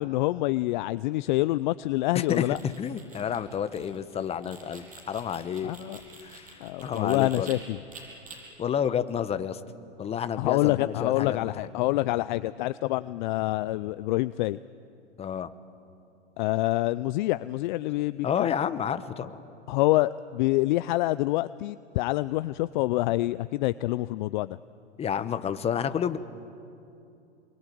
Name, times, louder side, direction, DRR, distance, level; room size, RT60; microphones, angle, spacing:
voice 1, 0.0-2.6 5.6-6.0 6.6-7.8 10.4-14.6 16.4-18.5 19.7-24.6, left 18 dB, 40° left, 15 dB, 0.5 m, -26 dB
sound 1, 2.0-7.5 7.9-8.4, right 4 dB, 20° right, 7.8 m, -48 dB
voice 2, 2.1-5.7 6.2-7.5 8.6-9.6 10.0-11.7 15.2-15.5 18.2-19.3 25.0-26.2, left 8 dB, 15° left, 12 dB, 1.1 m, -30 dB
27.0 x 22.5 x 9.4 m, 2.6 s
hypercardioid pair, 120°, 36 cm